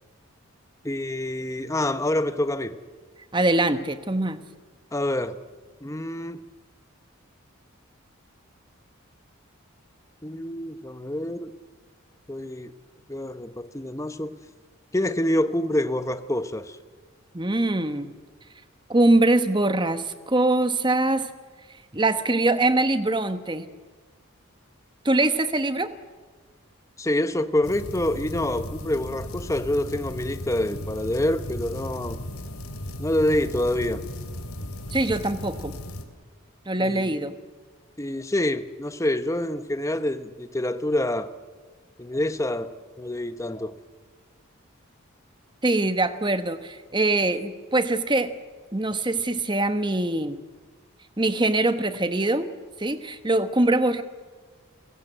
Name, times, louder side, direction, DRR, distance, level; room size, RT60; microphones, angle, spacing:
voice 1, 0.8-2.8 4.9-5.4 5.8-6.4 10.2-11.5 12.3-12.7 13.1-14.3 14.9-16.8 27.0-32.2 33.0-34.0 36.8-37.1 38.0-41.3 42.0-43.7, left 1 dB, 15° left, 0.9 m, -27 dB
voice 2, 3.3-4.4 17.3-18.1 18.9-21.3 21.9-23.6 25.0-25.9 34.9-35.7 36.7-37.3 45.6-48.3 48.7-50.4 51.2-52.5 52.8-54.0, right 2 dB, 20° right, 1.1 m, -23 dB
sound 1, 27.6-36.0, left 1 dB, 85° left, 2.9 m, -36 dB
30.0 x 17.0 x 7.9 m
head